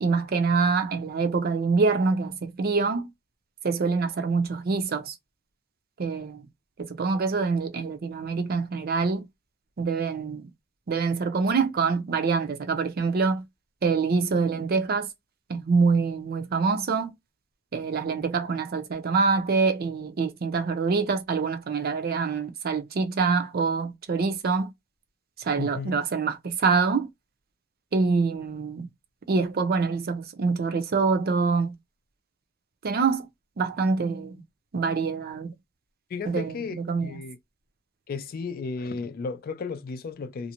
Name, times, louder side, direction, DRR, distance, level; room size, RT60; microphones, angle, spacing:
voice 1, 0.0-3.1 3.6-5.1 6.0-6.4 6.8-9.2 9.8-10.5 10.9-13.4 13.8-15.1 15.5-17.1 17.7-24.7 25.4-27.1 27.9-28.9 29.3-31.8 32.8-33.3 33.6-34.4 34.7-35.5 36.2-37.2, right 4 dB, 50° right, 0.5 m, -25 dB
voice 2, 25.6-26.0 36.1-36.8 37.0-37.4 38.1-40.5, left 4 dB, 45° left, 0.4 m, -34 dB
2.5 x 2.0 x 2.8 m
head